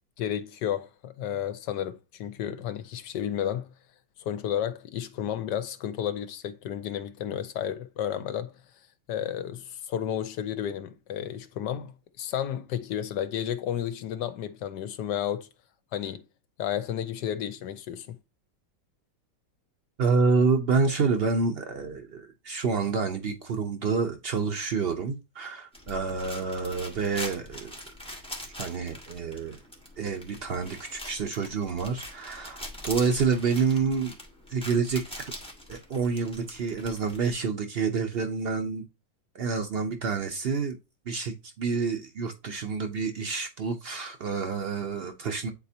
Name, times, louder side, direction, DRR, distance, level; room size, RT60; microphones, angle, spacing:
voice 1, 0.2-3.7 4.2-8.6 9.1-11.9 12.2-15.5 15.9-16.2 16.6-18.2, left 10 dB, 75° left, 1.2 m, -32 dB
voice 2, 20.0-27.7 28.6-29.6 30.0-34.1 34.5-35.3 35.7-38.8 39.3-40.8 41.1-45.5, right 5 dB, 90° right, 0.5 m, -28 dB
sound 1, 25.7-37.4, left 1 dB, 5° left, 1.5 m, -43 dB
9.2 x 4.2 x 2.8 m
omnidirectional pair, 2.0 m